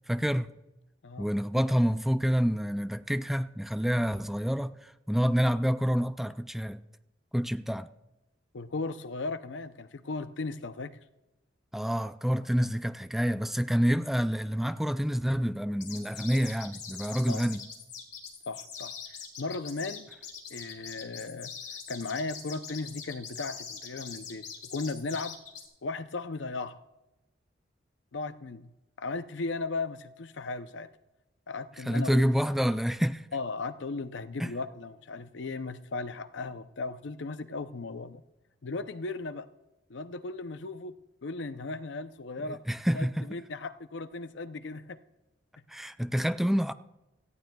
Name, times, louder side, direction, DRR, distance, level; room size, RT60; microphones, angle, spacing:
voice 1, 0.1-0.5 1.2-6.8 7.3-7.9 11.7-17.6 31.9-33.2 34.4-34.5 42.7-43.3 45.7-46.7, equal, ahead, 0.3 m, -28 dB
voice 2, 8.5-10.9 17.3-17.4 18.5-20.1 20.5-21.5 21.9-25.4 25.8-26.8 28.1-28.7 29.0-30.9 31.5-32.4 33.3-38.2 38.6-39.5 39.9-42.6 42.9-45.0, left 3 dB, 80° left, 0.6 m, -36 dB
sound 1, 15.8-25.7, left 6 dB, 45° left, 2.5 m, -43 dB
18.0 x 14.5 x 2.3 m
head